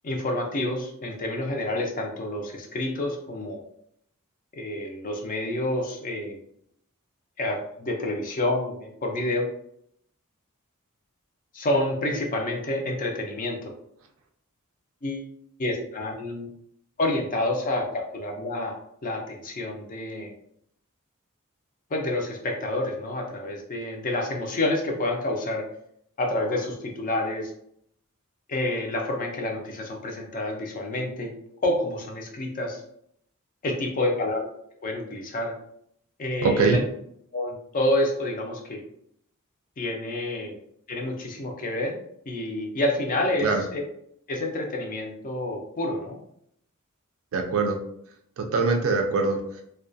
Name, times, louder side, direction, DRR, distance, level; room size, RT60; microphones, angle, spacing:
voice 1, 0.0-3.6 4.6-6.4 7.4-9.5 11.5-13.7 15.0-15.3 15.6-16.5 17.0-18.8 19.0-20.3 21.9-25.6 26.2-27.5 28.5-31.3 31.6-32.8 33.6-34.5 34.8-35.5 36.2-36.8 37.3-38.8 39.8-40.6 40.9-42.0 42.3-43.8 44.3-46.2, left 1 dB, 40° left, 1 dB, 0.5 m, -28 dB
voice 2, 36.4-36.9 43.4-43.6 47.3-47.8 48.4-49.6, right 3 dB, 65° right, 3 dB, 0.3 m, -23 dB
2.3 x 2.2 x 2.5 m, 0.71 s
head